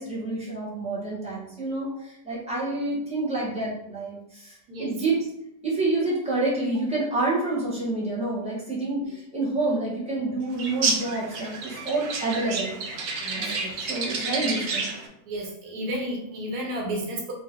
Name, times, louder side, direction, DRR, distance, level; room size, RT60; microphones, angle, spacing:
voice 1, 0.0-4.5 4.8-5.1 5.6-12.7 13.4-14.9, right 2 dB, 5° right, -7 dB, 1.3 m, -28 dB
voice 2, 4.7-5.1 13.2-13.7 14.2-14.5 15.2-17.3, right 1 dB, 85° right, -1 dB, 1.4 m, -32 dB
sound 1, 10.6-15.1, right 3 dB, 60° right, 0.8 m, -30 dB
3.5 x 3.1 x 3.7 m, 0.80 s
omnidirectional pair, 1.6 m